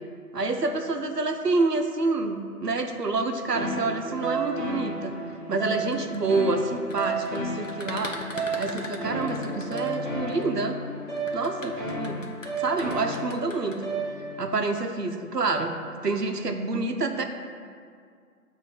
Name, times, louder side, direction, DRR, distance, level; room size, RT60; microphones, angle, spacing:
voice 1, 0.3-5.2 5.5-8.2 8.6-10.8 11.3-12.2 12.6-13.9 14.4-17.2, right 3 dB, 85° right, 6 dB, 0.7 m, -27 dB
sound 1, 3.5-14.5, right 2 dB, 30° right, 1.4 m, -32 dB
sound 2, 5.8-10.4 11.2-13.8, left 1 dB, 55° left, 0.6 m, -40 dB
7.7 x 2.6 x 4.9 m, 2.2 s
figure-of-eight pair, 170°, 47 cm